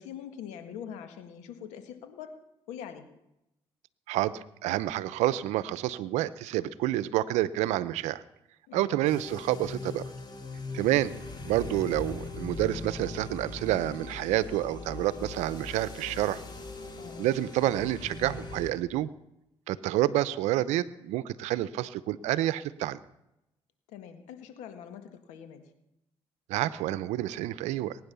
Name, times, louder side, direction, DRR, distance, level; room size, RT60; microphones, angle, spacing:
voice 1, 0.0-2.3 2.7-3.1 8.7-9.1 16.9-17.3 23.9-25.7, left 8 dB, 90° left, 8 dB, 1.7 m, -43 dB
voice 2, 4.1-8.2 8.7-10.0 10.7-11.1 11.4-16.4 17.2-19.1 19.7-23.0 26.5-28.0, right 14 dB, 85° right, 16 dB, 0.7 m, -28 dB
sound 1, 9.0-18.7, left 3 dB, 40° left, 3.6 m, -40 dB
20.5 x 9.6 x 6.9 m, 0.88 s
supercardioid pair, 60°, 12 cm